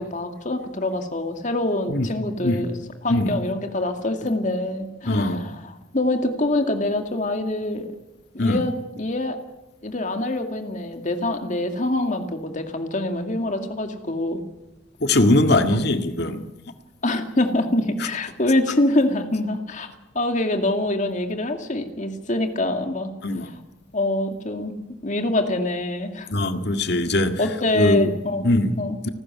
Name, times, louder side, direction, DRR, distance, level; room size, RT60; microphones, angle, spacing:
voice 1, 0.0-2.8 3.0-8.0 8.3-9.4 9.8-14.4 15.7-15.8 17.0-23.1 23.9-24.8 25.0-26.3 27.4-28.4 28.8-29.0, left 1 dB, 40° left, 2.2 m, -25 dB
voice 2, 5.1-5.5 8.4-8.6 15.0-16.4 23.2-23.5 26.3-27.4 27.7-28.1 28.4-28.7 29.0-29.1, left 1 dB, 60° left, 1.9 m, -21 dB
29.5 x 13.5 x 9.5 m
head